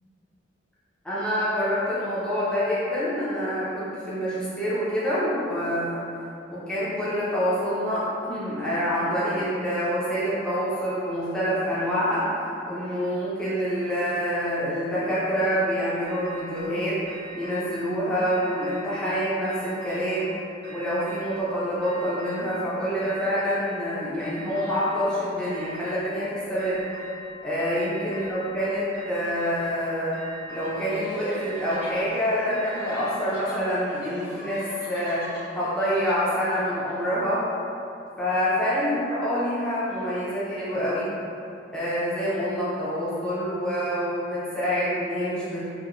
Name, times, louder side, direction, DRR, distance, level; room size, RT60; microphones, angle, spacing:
voice 1, 1.0-6.1 6.5-12.3 12.7-17.0 17.4-20.3 20.7-26.8 27.4-30.2 30.5-35.2 35.5-37.4 38.2-41.1 41.7-45.7, equal, 5° left, -11 dB, 0.4 m, -26 dB
sound 1, 16.0-16.7 17.1-17.9 18.3-19.1 19.4-20.3 20.6-21.5 21.8-22.7 23.0-23.9 24.2-25.1 25.4-26.2 26.6-27.4 27.8-28.6 28.9-29.8 30.1-31.0 31.3-33.4, right 1 dB, 65° right, 0.5 m, -42 dB
sound 2, 30.6-36.6, left 1 dB, 60° left, 0.7 m, -43 dB
2.8 x 2.1 x 2.4 m, 2.7 s
head